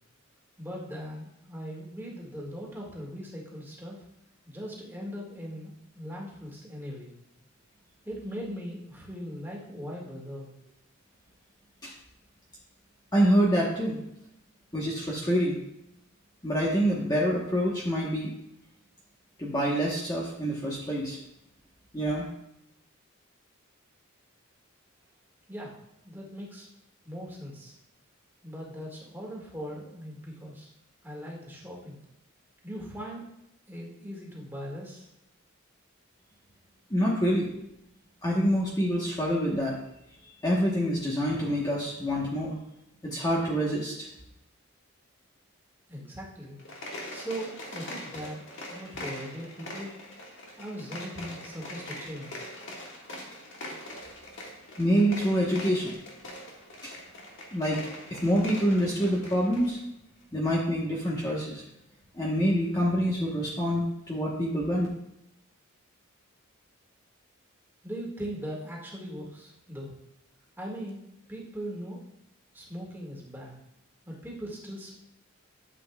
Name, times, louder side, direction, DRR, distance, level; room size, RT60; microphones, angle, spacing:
voice 1, 0.6-4.0 4.5-7.1 8.0-10.5 25.5-25.8 26.0-26.7 27.0-27.7 28.4-30.7 31.0-32.0 32.6-33.2 33.7-35.1 45.9-46.6 47.1-49.9 50.6-52.5 67.8-70.0 70.6-71.0 71.3-72.0 72.5-73.6 74.1-74.9, equal, 10° right, -3 dB, 2.0 m, -39 dB
voice 2, 13.1-14.0 14.7-15.6 16.4-18.3 19.4-21.2 21.9-22.3 36.9-37.5 38.2-39.8 40.2-42.6 43.0-44.1 54.8-56.0 56.8-56.9 57.5-57.8 58.1-59.8 60.3-61.6 62.1-64.9, equal, 15° left, -5 dB, 1.2 m, -26 dB
sound 1, 46.5-59.8, left 1 dB, 60° left, 1.9 m, -42 dB
12.0 x 7.8 x 2.4 m, 0.83 s
head